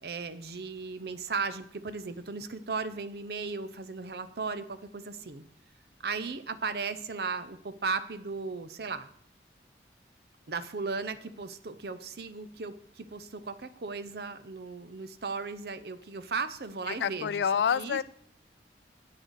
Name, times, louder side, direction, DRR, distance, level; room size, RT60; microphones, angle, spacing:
voice 1, 0.0-5.4 6.0-9.1 10.5-17.4 17.7-18.0, right 4 dB, 65° right, 11 dB, 0.7 m, -36 dB
voice 2, 16.9-18.0, left 7 dB, 80° left, 19 dB, 0.3 m, -28 dB
8.8 x 6.4 x 6.3 m, 0.63 s
head